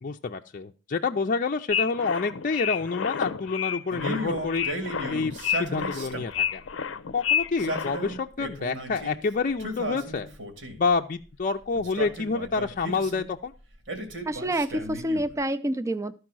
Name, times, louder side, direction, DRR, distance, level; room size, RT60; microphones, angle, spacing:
voice 1, 0.0-4.8 5.1-6.6 7.1-10.3 10.8-13.5, left 4 dB, 45° left, 4 dB, 0.5 m, -28 dB
sound 1, 1.7-8.2, left 8 dB, 90° left, 0.6 m, -30 dB
Male speech man speaking, 3.9-6.5 7.4-9.2 9.6-10.9 11.7-13.3 13.9-15.4, right 1 dB, 90° right, 2.3 m, -35 dB
voice 2, 14.3-16.1, right 1 dB, 15° right, 9 dB, 0.5 m, -27 dB
13.0 x 4.7 x 6.1 m, 0.34 s
head